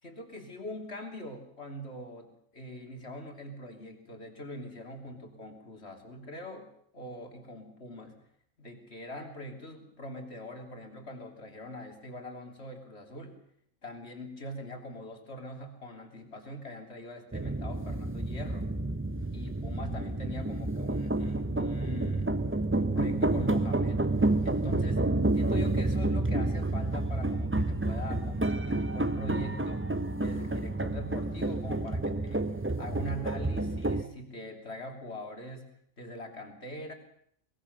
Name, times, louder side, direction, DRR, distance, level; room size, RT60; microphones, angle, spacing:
voice 1, 0.0-8.2 8.6-13.4 13.8-18.7 19.3-22.3 22.9-24.0 24.4-25.1 25.3-30.0 30.2-35.7 36.0-36.9, left 1 dB, 50° left, 4 dB, 3.5 m, -43 dB
sound 1, 17.3-34.0, right 2 dB, 10° right, 0.6 m, -29 dB
23.5 x 20.5 x 6.8 m, 0.66 s
omnidirectional pair, 1.4 m